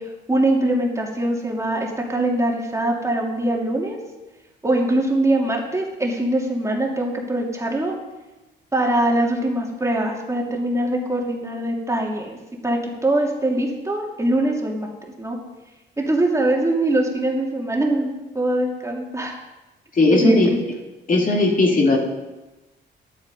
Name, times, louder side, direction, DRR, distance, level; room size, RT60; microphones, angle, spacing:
voice 1, 0.0-4.0 4.6-8.0 8.7-12.4 12.6-14.9 15.2-15.4 16.0-18.1 18.3-19.3 20.1-20.6, right 1 dB, 15° right, -1 dB, 2.7 m, -22 dB
voice 2, 20.0-20.5 21.1-22.0, left 2 dB, 45° left, 0 dB, 2.7 m, -16 dB
12.0 x 11.5 x 5.4 m, 1.1 s
cardioid pair, 90°, 20 cm